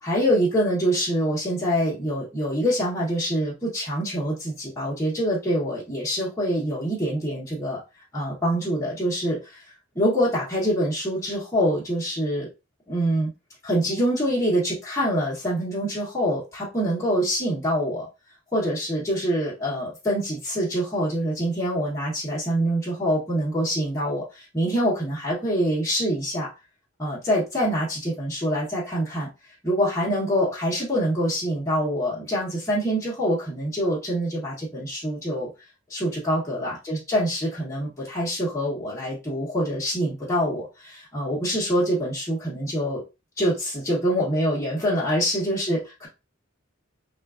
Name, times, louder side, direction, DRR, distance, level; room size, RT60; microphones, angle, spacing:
voice 1, 0.0-7.8 8.1-12.5 12.9-13.3 13.6-18.1 18.5-26.5 27.0-29.3 29.6-35.5 35.9-43.0 43.4-46.1, equal, 15° left, -7 dB, 0.9 m, -25 dB
3.7 x 2.3 x 2.4 m, 0.27 s
head